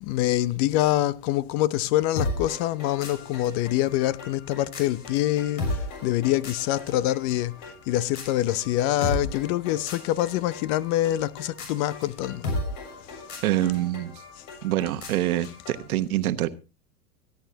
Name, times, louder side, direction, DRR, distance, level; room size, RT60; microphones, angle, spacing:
voice 1, 0.0-12.5, left 14 dB, 45° left, 0.7 m, -25 dB
sound 1, 2.2-15.9, left 2 dB, 60° left, 7.2 m, -36 dB
voice 2, 13.4-14.1 14.6-16.5, right 14 dB, 70° right, 1.3 m, -25 dB
24.5 x 10.5 x 2.8 m
hypercardioid pair, 100°, 46 cm